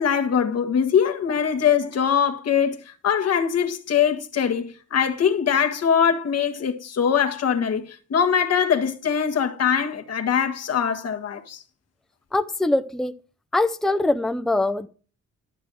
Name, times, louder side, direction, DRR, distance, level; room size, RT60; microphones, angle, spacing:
voice 1, 0.0-11.6, left 7 dB, 55° left, 1.6 m, -22 dB
voice 2, 12.3-13.1 13.5-14.9, left 2 dB, ahead, 0.7 m, -22 dB
12.5 x 6.8 x 6.2 m
cardioid pair, 90°, 30 cm